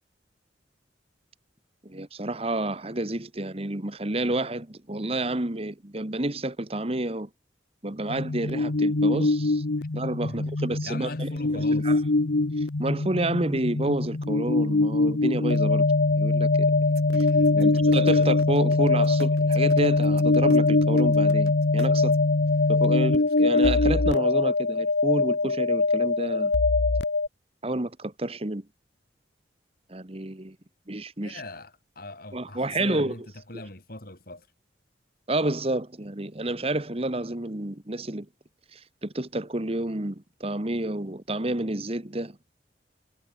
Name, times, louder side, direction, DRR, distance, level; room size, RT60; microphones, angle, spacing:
voice 1, 1.8-7.3 7.8-9.6 9.9-12.0 12.6-15.8 16.1-16.7 17.2-17.3 17.5-22.1 22.7-26.5 27.6-28.6 29.9-30.6 30.9-31.4 32.3-33.1 35.3-38.3 38.7-42.4, right 1 dB, 30° right, 1.5 m, -30 dB
sound 1, 8.1-27.3, left 3 dB, 70° left, 1.0 m, -22 dB
voice 2, 10.2-11.9 17.3-17.8 31.2-33.2 33.5-34.5, left 2 dB, 55° left, 6.0 m, -41 dB
sound 2, 16.8-22.3 23.2-23.8, right 2 dB, 60° right, 2.3 m, -43 dB
head